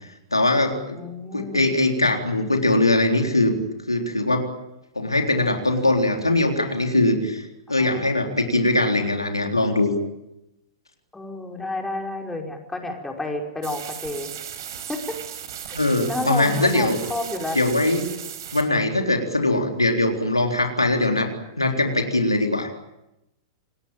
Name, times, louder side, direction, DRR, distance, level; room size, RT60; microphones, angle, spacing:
voice 1, 0.3-1.0 1.3-3.6 3.9-4.4 5.0-9.9 15.7-17.0 17.6-18.0 18.5-21.3 21.6-22.7, left 2 dB, 90° left, 3 dB, 3.8 m, -21 dB
voice 2, 0.9-1.7 7.8-8.1 11.1-14.3 14.9-15.2 15.7-15.8 16.1-17.6, left 2 dB, 10° left, 2 dB, 5.2 m, -30 dB
sound 1, 13.6-18.6, right 9 dB, 60° right, 4.9 m, -36 dB
28.0 x 20.0 x 9.0 m, 0.90 s
figure-of-eight pair, 100°, 2 cm